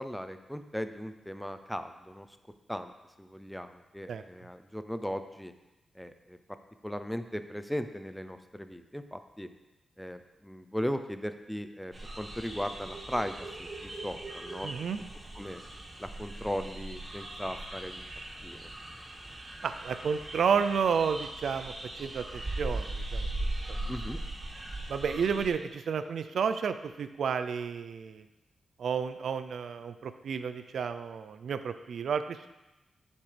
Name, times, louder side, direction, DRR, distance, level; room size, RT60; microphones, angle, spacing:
voice 1, 0.0-2.3 2.7-2.9 3.2-5.5 6.0-6.4 6.8-9.5 10.0-13.7 14.0-14.7 15.4-15.6 16.0-18.1 18.4-18.7 23.9-24.2, equal, 5° left, 9 dB, 0.5 m, -37 dB
sound 1, 11.9-25.5, right 2 dB, 30° right, 2.0 m, -39 dB
voice 2, 14.6-15.0 19.6-23.3 23.7-23.9 24.9-28.2 28.8-32.5, right 6 dB, 80° right, 11 dB, 0.5 m, -31 dB
9.4 x 7.2 x 3.4 m, 1.0 s
cardioid pair, 85°, 0 cm